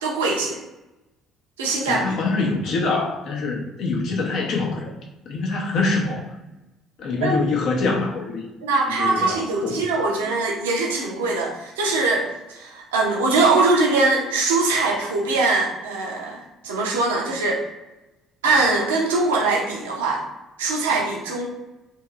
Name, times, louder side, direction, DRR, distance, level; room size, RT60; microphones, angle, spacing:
voice 1, 0.0-0.6 1.6-2.2 7.2-7.3 8.6-17.6 18.4-20.2 20.6-21.5, right 3 dB, 85° right, -1 dB, 0.6 m, -22 dB
voice 2, 1.8-4.9 5.3-6.2 7.0-8.5 8.9-9.8, left 3 dB, 60° left, 0 dB, 0.7 m, -24 dB
2.8 x 2.8 x 2.4 m, 1.0 s
hypercardioid pair, 55°, 0 cm